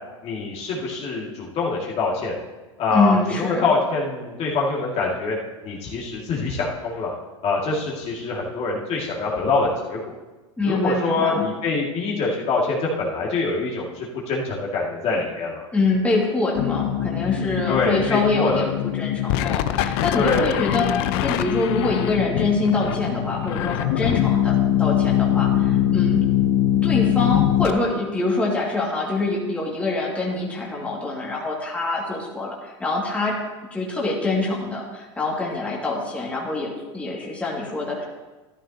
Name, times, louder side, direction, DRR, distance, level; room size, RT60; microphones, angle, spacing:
voice 1, 0.2-2.3 2.8-5.4 5.6-7.1 7.4-10.2 10.6-15.7 17.7-18.7 20.2-20.6, left 3 dB, 45° left, -4 dB, 2.4 m, -24 dB
voice 2, 2.9-3.7 10.6-11.4 15.7-18.7 19.0-20.9 21.2-26.2 26.8-33.4 33.7-38.0, left 3 dB, 10° left, -4 dB, 2.4 m, -25 dB
sound 1, 16.6-27.7, left 11 dB, 60° left, 0.6 m, -22 dB
13.0 x 11.0 x 3.0 m, 1.2 s
hypercardioid pair, 105°, 15 cm